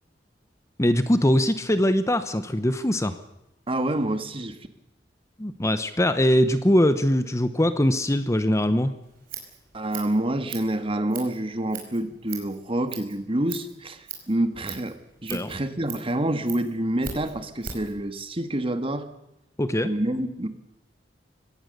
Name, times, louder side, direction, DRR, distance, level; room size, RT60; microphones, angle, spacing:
voice 1, 0.8-3.2 5.4-8.9 15.3-15.5 19.6-19.9, left 1 dB, 15° left, 11 dB, 0.9 m, -22 dB
voice 2, 3.7-4.6 9.7-19.1 19.8-20.5, right 1 dB, 30° right, 9 dB, 1.6 m, -27 dB
Scissors, 9.0-18.0, right 7 dB, 55° right, 5.0 m, -41 dB
24.0 x 17.5 x 6.7 m, 0.91 s
head